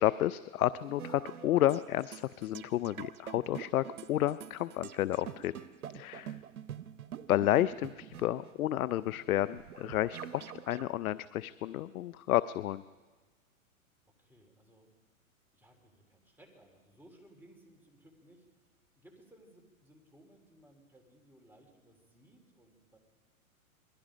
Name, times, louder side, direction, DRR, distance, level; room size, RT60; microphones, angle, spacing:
voice 1, 0.0-5.5 5.9-6.3 7.3-12.8, left 13 dB, 80° left, 16 dB, 0.7 m, -31 dB
sound 1, 0.7-10.8, right 10 dB, 85° right, 1.0 m, -46 dB
voice 2, 6.0-6.7 14.2-14.9 15.5-18.7 18.9-23.0, right 1 dB, 5° right, 2 dB, 3.4 m, -61 dB
27.0 x 21.0 x 5.2 m, 1.4 s
hypercardioid pair, 130°, 43 cm